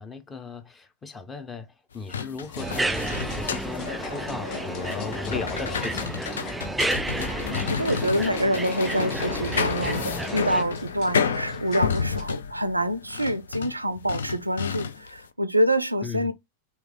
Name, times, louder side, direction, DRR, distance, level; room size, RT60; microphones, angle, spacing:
voice 1, 0.0-1.7 1.9-6.4 16.0-16.3, left 4 dB, 15° left, 0.7 m, -37 dB
sound 1, 1.9-15.2, left 6 dB, 65° left, 0.4 m, -31 dB
sound 2, 2.4-12.2, left 3 dB, 45° left, 1.2 m, -43 dB
sound 3, 2.6-10.6, right 2 dB, 5° right, 0.3 m, -31 dB
voice 2, 7.1-16.3, right 1 dB, 85° right, 0.4 m, -26 dB
3.3 x 3.1 x 3.6 m
figure-of-eight pair, 90°, 0 cm